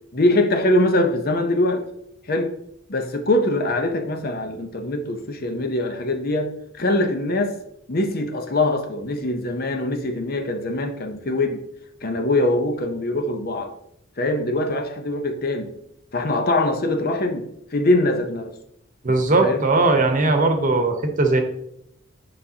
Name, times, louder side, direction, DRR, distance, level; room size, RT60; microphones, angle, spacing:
voice 1, 0.1-1.8 2.3-2.5 2.9-7.6 7.9-11.6 12.0-13.7 14.2-15.7 16.1-17.4 17.7-18.5 19.1-19.2 19.4-19.7, left 1 dB, 45° left, 5 dB, 0.8 m, -22 dB
voice 2, 19.0-21.4, right 3 dB, 40° right, 5 dB, 1.0 m, -19 dB
9.6 x 4.9 x 2.9 m, 0.76 s
head